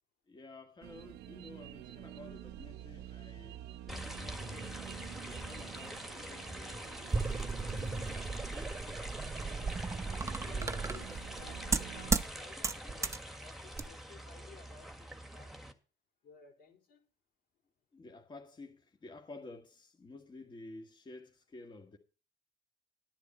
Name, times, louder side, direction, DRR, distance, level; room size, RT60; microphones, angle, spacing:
voice 1, 0.3-4.8 5.2-9.8 12.0-12.1 17.9-22.0, left 2 dB, 25° left, 1.9 m, -53 dB
sound 1, 0.8-12.2, right 13 dB, 80° right, 0.7 m, -49 dB
sound 2, 3.9-15.7, equal, ahead, 1.7 m, -45 dB
sound 3, 4.4-6.0 6.7-12.3 12.6-13.2 13.7-13.9, right 3 dB, 15° right, 0.8 m, -36 dB
voice 2, 10.4-15.7 16.2-17.0, left 7 dB, 65° left, 4.3 m, -57 dB
12.5 x 10.5 x 4.3 m
cardioid pair, 110°, 17 cm